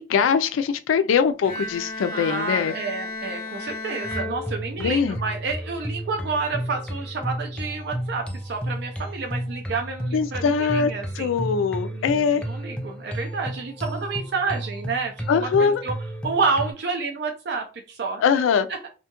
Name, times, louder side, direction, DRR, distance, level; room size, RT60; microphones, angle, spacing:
voice 1, 0.0-2.7 4.8-5.2 10.1-12.4 15.3-15.8 18.2-18.7, left 6 dB, 85° left, 0.3 m, -22 dB
Bowed string instrument, 1.4-5.2, left 2 dB, 50° left, 0.8 m, -34 dB
voice 2, 2.1-11.5 11.9-15.9 16.2-18.4 18.7-18.9, right 4 dB, 60° right, 0.4 m, -29 dB
sound 1, 4.0-16.7, right 1 dB, 5° left, 0.3 m, -32 dB
2.7 x 2.2 x 2.9 m
head